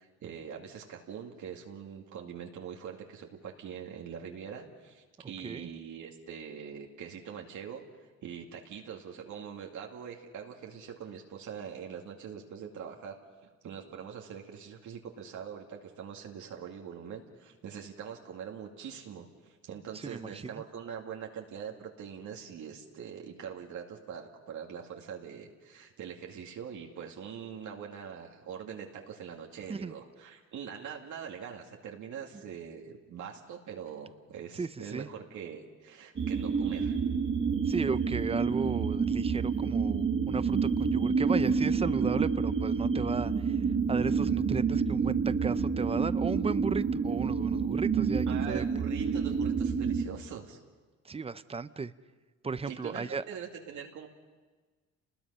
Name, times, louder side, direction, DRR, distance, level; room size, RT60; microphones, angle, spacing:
voice 1, 0.0-7.8 8.2-13.2 13.6-37.0 48.3-50.6 52.7-54.1, right 7 dB, 75° right, 0 dB, 2.3 m, -43 dB
voice 2, 5.4-5.7 20.0-20.5 29.7-29.9 34.5-35.1 37.7-48.6 51.0-51.9 52.4-53.2, right 4 dB, 20° right, 14 dB, 0.7 m, -35 dB
sound 1, 36.2-50.1, right 5 dB, 40° right, 1.7 m, -28 dB
29.0 x 20.5 x 5.6 m, 1.3 s
cardioid pair, 90°, 30 cm